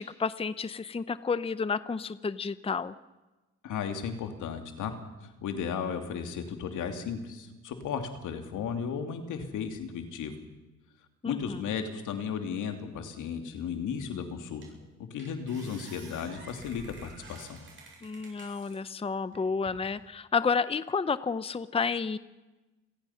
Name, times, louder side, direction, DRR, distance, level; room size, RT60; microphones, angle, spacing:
voice 1, 0.0-2.9 11.2-11.6 18.0-22.2, left 5 dB, 20° left, 15 dB, 0.7 m, -31 dB
voice 2, 3.6-4.9 5.4-10.3 11.3-14.6 15.0-17.6, left 7 dB, 80° left, 6 dB, 2.7 m, -35 dB
sound 1, 14.0-14.1 14.6-14.9 15.2-18.8 19.3-20.0, right 3 dB, 40° right, 7.9 m, -50 dB
28.0 x 17.5 x 5.8 m, 1.1 s
cardioid pair, 90°, 30 cm